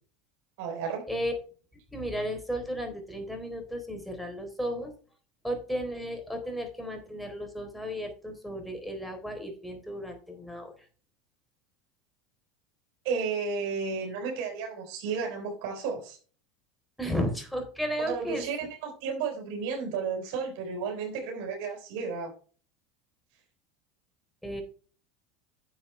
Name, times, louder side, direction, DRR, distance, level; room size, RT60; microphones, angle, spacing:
voice 1, 0.6-1.0 13.0-16.2 18.1-22.3, right 5 dB, 70° right, 2 dB, 3.8 m, -33 dB
voice 2, 1.9-4.9 5.4-10.7 17.0-18.5 24.4-24.6, equal, 5° left, 4 dB, 3.8 m, -34 dB
9.9 x 7.2 x 3.4 m, 0.39 s
supercardioid pair, 100°, 0 cm